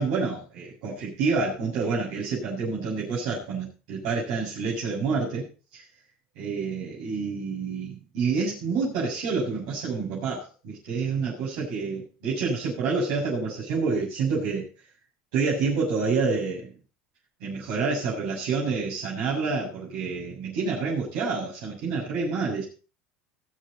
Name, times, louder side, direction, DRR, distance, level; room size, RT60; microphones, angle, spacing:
voice 1, 0.0-5.5 5.7-5.8 6.4-14.7 15.3-16.7 17.4-22.6, right 4 dB, 75° right, -7 dB, 7.4 m, -28 dB
21.0 x 7.9 x 4.4 m, 0.35 s
cardioid pair, 140°, 3 cm